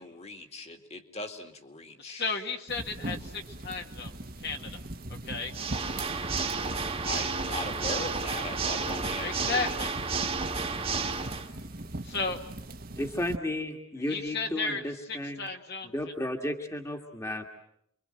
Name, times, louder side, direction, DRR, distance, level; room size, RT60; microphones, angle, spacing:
voice 1, 0.0-2.3 7.0-9.7, left 2 dB, 30° left, 6 dB, 2.3 m, -39 dB
voice 2, 2.0-4.1 4.4-4.8 5.1-5.5 9.2-9.9 12.0-12.4 14.1-16.1, left 4 dB, 50° left, 3 dB, 2.1 m, -34 dB
sound 1, 2.7-13.4, right 1 dB, 45° right, 1.4 m, -41 dB
Water / Mechanisms, 5.5-11.5, right 4 dB, 30° right, 1.7 m, -31 dB
voice 3, 10.6-11.1 13.0-15.5 15.9-17.5, left 1 dB, 15° left, 4 dB, 1.9 m, -34 dB
29.0 x 24.0 x 7.8 m, 0.71 s
head